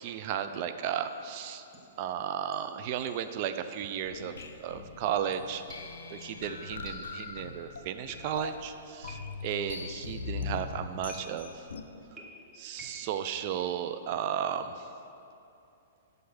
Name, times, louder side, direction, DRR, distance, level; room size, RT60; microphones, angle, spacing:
voice 1, 0.0-1.6 2.0-5.6 6.1-11.7 12.5-14.7, right 9 dB, 45° right, 9 dB, 0.4 m, -34 dB
sound 1, 1.0-1.3 1.7-2.0 2.5-3.4 3.7-4.0 4.4-4.7 5.3-7.6 8.1-8.7 9.1-9.6 11.1-11.7 12.2-13.2, right 1 dB, 20° right, 1.1 m, -52 dB
sound 2, 4.0-11.8, left 5 dB, 70° left, 0.5 m, -41 dB
6.4 x 5.2 x 5.9 m, 2.7 s
figure-of-eight pair, 115°, 0 cm